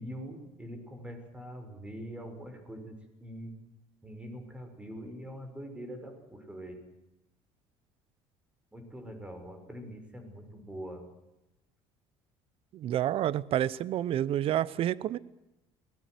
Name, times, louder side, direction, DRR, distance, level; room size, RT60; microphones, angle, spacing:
voice 1, 0.0-3.5 4.0-6.8 8.7-11.1, equal, 10° right, 6.0 m, -43 dB
voice 2, 12.7-15.2, right 12 dB, 55° right, 0.8 m, -29 dB
22.0 x 19.5 x 8.0 m
cardioid pair, 105°, 12 cm